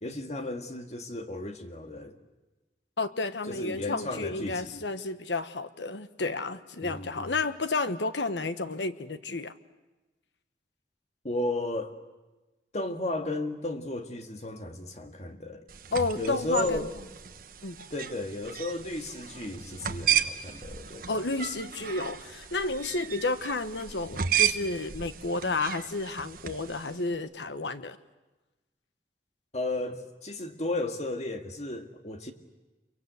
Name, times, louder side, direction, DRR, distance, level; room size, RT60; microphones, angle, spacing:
voice 1, 0.0-2.2 3.5-4.9 6.8-7.4 11.2-11.9 12.7-15.6 16.2-16.9 17.9-21.1 29.5-32.3, left 2 dB, 40° left, 1.9 m, -34 dB
voice 2, 3.0-9.5 15.9-16.9 17.6-17.8 21.1-28.0, left 3 dB, 85° left, 1.2 m, -31 dB
sound 1, 15.7-27.0, right 9 dB, 50° right, 1.2 m, -34 dB
28.0 x 24.0 x 8.1 m
head